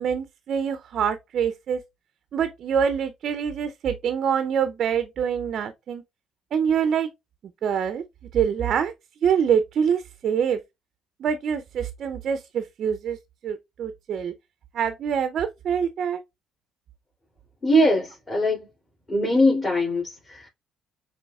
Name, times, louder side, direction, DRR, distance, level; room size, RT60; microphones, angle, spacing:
voice 1, 0.0-1.8 2.3-6.0 6.5-7.1 7.6-8.0 8.3-8.9 9.2-10.6 11.2-13.2 13.4-14.3 14.7-16.2, right 7 dB, 60° right, 0.4 m, -25 dB
voice 2, 17.6-18.7 19.1-20.5, equal, 25° left, 2.4 m, -21 dB
6.8 x 3.0 x 2.3 m
supercardioid pair, 75°, 0 cm